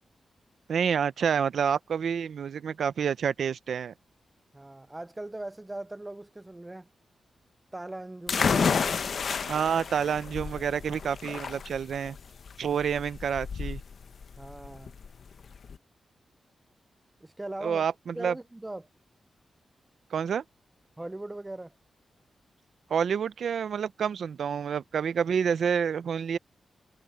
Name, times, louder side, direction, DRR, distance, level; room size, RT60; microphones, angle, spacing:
voice 1, 0.7-3.9 9.5-12.2 12.6-13.8 17.6-18.3 20.1-20.4 22.9-26.4, right 7 dB, 75° right, 0.6 m, -28 dB
voice 2, 4.5-6.9 7.7-9.1 14.4-14.9 17.2-17.8 18.1-18.9 21.0-21.7, right 1 dB, 15° right, 0.4 m, -39 dB
sound 1, 8.3-15.8, left 6 dB, 60° left, 0.7 m, -31 dB
wide cardioid pair, 130°, 0 cm